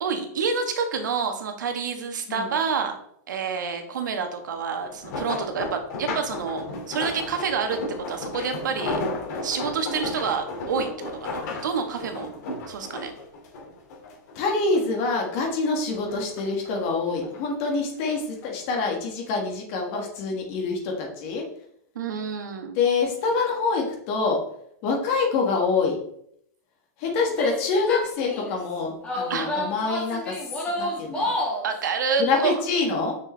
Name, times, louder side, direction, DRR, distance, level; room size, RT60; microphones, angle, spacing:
voice 1, 0.0-2.9 3.3-7.8 8.1-9.0 9.4-12.3 12.7-13.1 21.9-22.8 29.3-29.5 31.6-32.5, right 5 dB, 90° right, 6 dB, 1.3 m, -28 dB
sound 1, 4.8-14.4 14.7-15.7 16.1-17.4 18.2-18.5 18.9-19.0, left 2 dB, 65° left, 2.4 m, -33 dB
voice 2, 14.3-21.4 22.7-24.4 24.8-26.0 27.0-30.3 30.8-31.3 32.2-33.2, left 4 dB, 45° left, 1 dB, 1.7 m, -26 dB
Female speech woman speaking / Yell, 27.3-28.6 29.0-31.7, left 1 dB, 10° left, 1.9 m, -29 dB
6.5 x 6.1 x 3.3 m, 0.70 s
supercardioid pair, 145°, 10 cm